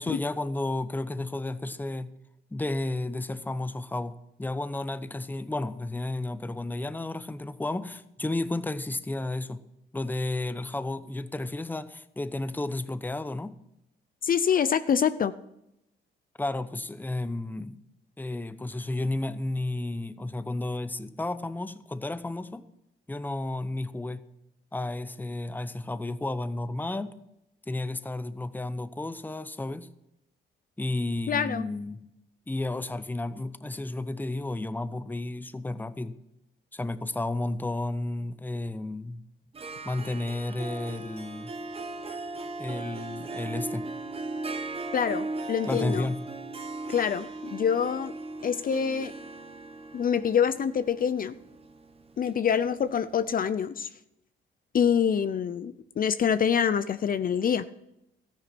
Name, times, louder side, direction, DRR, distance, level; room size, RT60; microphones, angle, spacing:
voice 1, 0.0-2.1 2.5-4.1 4.4-9.6 9.9-13.5 16.4-17.8 18.2-22.6 23.1-24.2 24.7-27.1 27.7-29.9 30.8-32.0 32.5-36.2 36.7-39.2 39.8-41.5 42.6-43.9 45.7-46.2, left 2 dB, 10° left, 13 dB, 0.8 m, -32 dB
voice 2, 14.2-15.3 31.3-31.7 44.9-46.1 46.9-48.1 48.4-49.1 49.9-51.3 52.2-53.9 54.7-57.7, left 7 dB, 45° left, 13 dB, 0.6 m, -26 dB
Harp, 39.5-53.1, right 2 dB, 30° right, 1.2 m, -38 dB
13.5 x 10.5 x 6.1 m, 0.83 s
cardioid pair, 90°, 20 cm